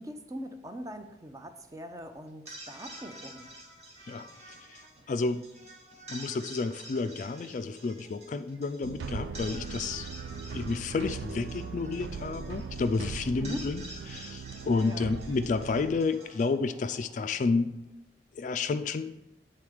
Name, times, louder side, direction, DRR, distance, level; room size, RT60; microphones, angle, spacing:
voice 1, 0.0-3.5 13.4-13.6 14.8-15.1, right 1 dB, 20° right, 7 dB, 0.5 m, -41 dB
sound 1, 2.3-17.5, right 1 dB, 40° right, 1.3 m, -49 dB
voice 2, 4.1-4.8 5.1-5.5 6.1-10.1 10.5-17.8 18.3-19.1, left 4 dB, 45° left, 11 dB, 0.3 m, -31 dB
sound 2, 8.8-16.0, right 5 dB, 85° right, 0.4 m, -40 dB
8.7 x 3.8 x 4.9 m, 0.89 s
head